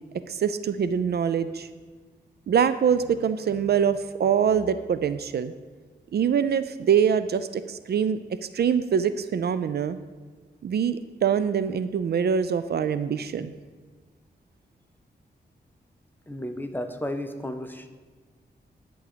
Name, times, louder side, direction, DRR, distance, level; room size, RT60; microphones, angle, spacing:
voice 1, 0.3-1.7 2.5-5.5 6.1-8.2 8.5-10.0 10.6-13.5, right 7 dB, 65° right, 13 dB, 0.4 m, -24 dB
voice 2, 16.3-17.9, left 1 dB, 10° left, 7 dB, 0.7 m, -33 dB
11.0 x 3.8 x 6.8 m, 1.4 s
wide cardioid pair, 90°, 18 cm